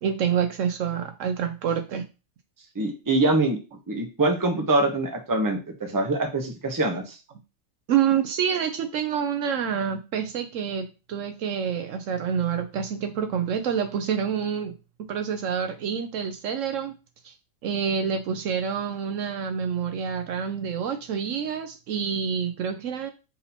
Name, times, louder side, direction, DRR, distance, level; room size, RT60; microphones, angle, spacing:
voice 1, 0.0-2.1 7.9-14.7 15.1-16.9 17.2-17.3 17.6-23.1, right 7 dB, 70° right, 6 dB, 0.9 m, -27 dB
voice 2, 2.7-3.6 3.9-7.2, right 2 dB, 20° right, 3 dB, 0.7 m, -24 dB
4.0 x 2.8 x 4.1 m, 0.30 s
omnidirectional pair, 1.5 m